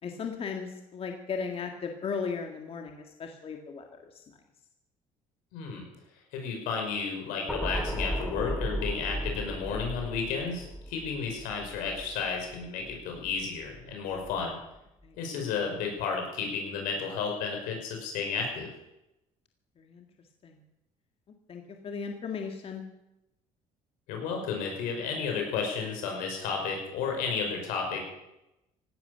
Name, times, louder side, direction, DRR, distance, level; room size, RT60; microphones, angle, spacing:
voice 1, 0.0-4.2 15.0-15.2 19.8-20.1 20.4-20.6 21.5-22.8, left 5 dB, 45° left, 4 dB, 1.9 m, -36 dB
voice 2, 5.5-5.9 6.3-14.6 15.2-18.7 24.1-28.0, left 5 dB, 90° left, 2 dB, 5.5 m, -32 dB
sound 1, 7.5-13.8 14.1-14.4, equal, 5° left, 2.1 m, -36 dB
17.0 x 12.0 x 6.8 m, 0.90 s
cardioid pair, 105°, 14 cm